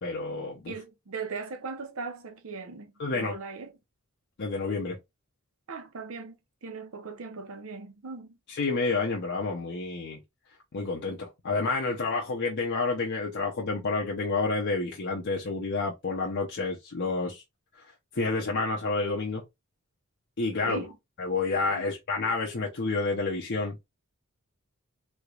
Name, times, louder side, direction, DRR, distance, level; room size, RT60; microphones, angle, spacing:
voice 1, 0.0-0.7 3.0-3.4 4.4-5.0 8.5-10.2 10.7-17.4 17.8-17.9 18.1-19.4 20.4-20.8 21.2-23.8, left 3 dB, 55° left, 0.7 m, -29 dB
voice 2, 0.7-3.7 5.7-6.3 6.6-8.4 20.7-20.9 21.8-21.9, right 4 dB, 70° right, 0.8 m, -39 dB
3.4 x 3.2 x 2.4 m
head